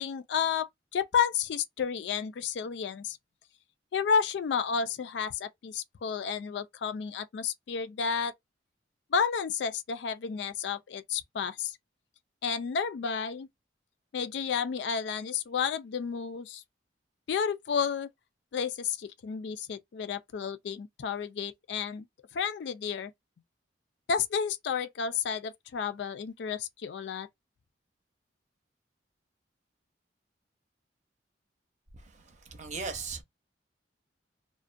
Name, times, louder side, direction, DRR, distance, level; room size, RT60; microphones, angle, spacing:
voice 1, 0.0-3.2 3.9-8.3 9.1-11.8 12.4-13.5 14.1-16.6 17.3-18.1 18.5-22.1 22.3-23.1 24.1-27.3, left 6 dB, 65° left, 0.3 m, -31 dB
voice 2, 31.9-33.2, right 4 dB, 40° right, 0.6 m, -39 dB
2.4 x 2.2 x 2.4 m
head